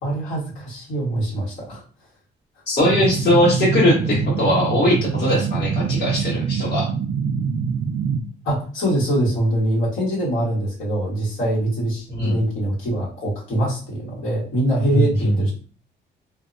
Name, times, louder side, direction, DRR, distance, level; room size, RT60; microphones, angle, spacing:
voice 1, 0.0-1.8 8.4-15.5, right 1 dB, 80° left, -6 dB, 1.5 m, -23 dB
voice 2, 2.7-6.9 12.2-12.4 14.9-15.4, left 1 dB, 55° left, -5 dB, 1.4 m, -20 dB
sound 1, 2.8-8.2, right 6 dB, 50° right, 0.4 m, -24 dB
2.6 x 2.1 x 2.6 m, 0.40 s
cardioid pair, 90°, 20 cm